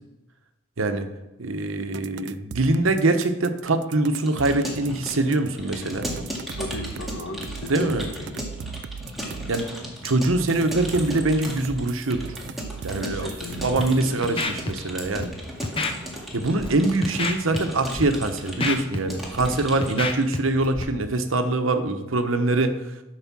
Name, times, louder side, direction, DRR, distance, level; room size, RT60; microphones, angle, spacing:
voice 1, 0.8-1.1 1.4-6.1 7.7-8.1 9.5-9.7 10.0-12.3 12.8-13.3 13.6-15.3 16.3-22.8, right 2 dB, 75° right, 7 dB, 1.0 m, -23 dB
sound 1, 1.9-5.5 6.0-9.7 10.2-14.0, right 7 dB, 60° right, 0.3 m, -38 dB
Keyboard (musical) / Computer keyboard, 4.2-20.3, equal, ahead, 2.1 m, -36 dB
voice 2, 6.6-8.5 13.0-14.4 19.7-20.0, left 2 dB, 85° left, 5 dB, 1.4 m, -36 dB
Scratching (performance technique), 13.6-13.8 14.2-14.7 15.0-15.2 15.6-15.9 16.4-16.7 17.0-17.6 17.8-18.0 18.4-19.5 19.8-20.4 20.6-20.8, left 3 dB, 25° left, 0.9 m, -28 dB
12.0 x 5.0 x 6.1 m, 0.97 s
head